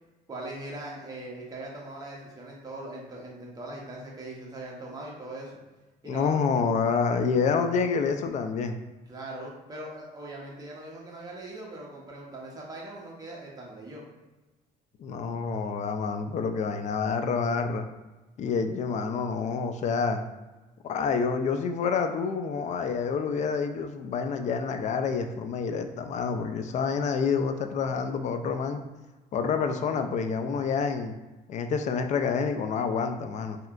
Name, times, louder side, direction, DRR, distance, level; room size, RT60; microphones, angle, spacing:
voice 1, 0.3-5.5 6.0-6.4 9.1-14.1, right 2 dB, 20° right, -3 dB, 0.9 m, -40 dB
voice 2, 6.0-8.8 15.0-17.8 18.4-20.2 20.8-28.8 29.3-31.1 31.5-33.6, left 5 dB, 45° left, 7 dB, 0.4 m, -28 dB
3.1 x 2.8 x 2.4 m, 1.1 s
cardioid pair, 110°, 17 cm